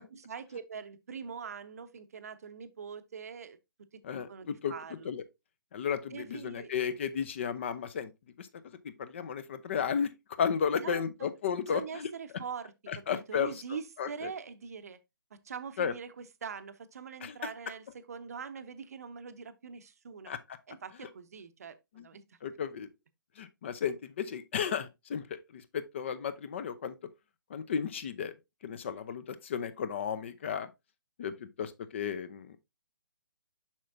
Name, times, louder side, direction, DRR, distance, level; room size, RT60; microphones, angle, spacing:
voice 1, 0.0-3.6 4.1-5.1 6.1-6.7 10.8-11.3 11.7-12.7 13.1-15.0 15.4-20.3 20.7-22.4, right 6 dB, 45° right, 0.7 m, -43 dB
voice 2, 4.0-4.7 5.0-5.2 5.7-8.1 8.4-10.1 10.4-12.1 12.9-13.5 14.0-14.3 15.8-15.9 17.2-17.3 20.3-20.4 22.0-22.1 22.4-22.9 23.4-26.9 27.5-28.3 28.6-30.7 31.2-32.6, left 7 dB, 35° left, 0.6 m, -34 dB
7.2 x 5.9 x 2.6 m
figure-of-eight pair, 135°, 11 cm